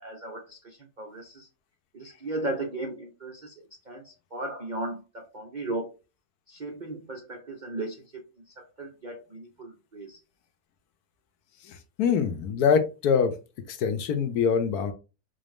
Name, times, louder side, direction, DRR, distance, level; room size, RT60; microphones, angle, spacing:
voice 1, 0.0-1.5 1.9-3.5 3.9-6.0 6.5-10.2, right 2 dB, 55° right, 1 dB, 0.5 m, -36 dB
voice 2, 11.6-13.3 13.7-14.9, left 6 dB, 75° left, 8 dB, 1.1 m, -24 dB
4.1 x 2.6 x 3.4 m, 0.30 s
omnidirectional pair, 1.8 m